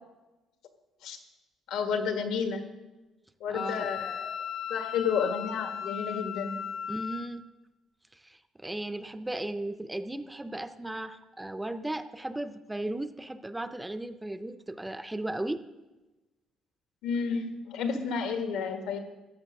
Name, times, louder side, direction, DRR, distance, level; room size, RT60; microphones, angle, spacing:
voice 1, 1.7-2.7 3.4-4.3 4.7-6.6 17.0-19.0, left 6 dB, 80° left, 6 dB, 1.6 m, -31 dB
Wind instrument woodwind instrument, 3.5-7.3, left 8 dB, 65° left, 0.9 m, -36 dB
voice 2, 3.5-3.9 6.9-7.4 8.1-15.6, right 1 dB, 5° right, 10 dB, 0.4 m, -36 dB
14.0 x 8.1 x 6.3 m, 1.1 s
cardioid pair, 180°, 0 cm